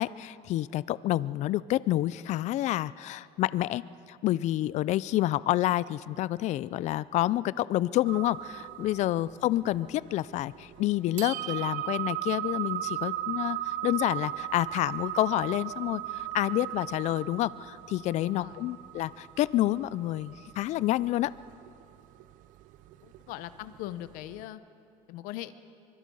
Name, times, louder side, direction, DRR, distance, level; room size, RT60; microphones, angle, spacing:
voice 1, 0.0-3.8 4.1-21.3, left 15 dB, 55° left, 19 dB, 0.4 m, -28 dB
sound 1, 8.1-24.4, right 14 dB, 65° right, 0.8 m, -37 dB
voice 2, 18.2-18.6 23.0-24.6 25.1-25.5, left 14 dB, 75° left, 14 dB, 0.9 m, -40 dB
24.5 x 23.0 x 5.5 m, 2.5 s
cardioid pair, 115°, 14 cm